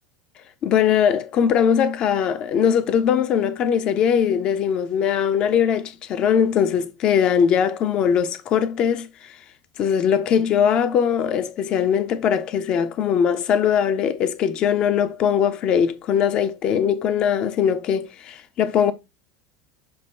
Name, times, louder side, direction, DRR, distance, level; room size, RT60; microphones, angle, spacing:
voice 1, 0.6-9.4 9.8-18.9, left 8 dB, 45° left, 1.0 m, -21 dB
7.3 x 3.1 x 4.4 m
figure-of-eight pair, 75°, 2 cm